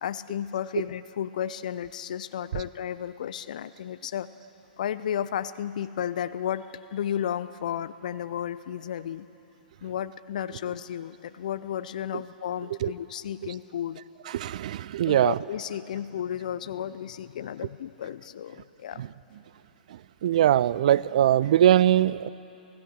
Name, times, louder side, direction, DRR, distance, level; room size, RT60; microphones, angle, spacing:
voice 1, 0.0-4.3 4.8-6.7 6.9-9.3 9.8-14.0 15.1-19.0, left 10 dB, 55° left, 14 dB, 0.6 m, -33 dB
voice 2, 14.3-15.4 19.0-19.1 19.9-22.3, right 11 dB, 50° right, 20 dB, 0.4 m, -22 dB
27.5 x 16.5 x 6.4 m, 2.9 s
figure-of-eight pair, 115°, 5 cm